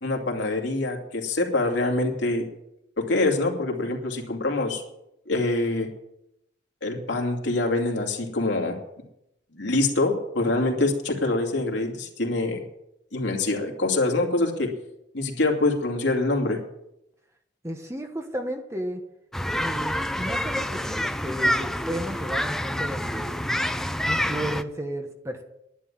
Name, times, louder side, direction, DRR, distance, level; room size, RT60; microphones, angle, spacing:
voice 1, 0.0-2.4 3.0-4.8 5.3-5.9 6.8-8.8 9.5-12.6 13.1-14.7 15.1-16.6, left 2 dB, 75° left, 2 dB, 2.6 m, -25 dB
voice 2, 17.6-19.0 19.5-23.5 24.1-25.4, right 1 dB, 15° right, 5 dB, 1.2 m, -33 dB
sound 1, 19.3-24.6, equal, ahead, 0.5 m, -27 dB
11.5 x 10.0 x 7.5 m, 0.83 s
head